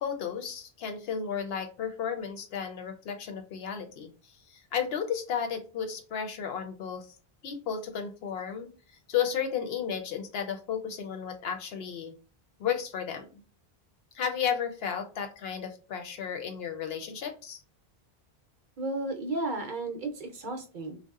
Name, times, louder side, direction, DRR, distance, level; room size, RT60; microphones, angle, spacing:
voice 1, 0.0-4.1 4.5-7.1 7.4-8.7 9.1-12.1 12.6-13.2 14.1-17.6, left 7 dB, 75° left, 6 dB, 0.8 m, -33 dB
voice 2, 18.8-21.0, right 2 dB, 55° right, 3 dB, 0.7 m, -33 dB
2.7 x 2.0 x 2.3 m, 0.36 s
omnidirectional pair, 1.0 m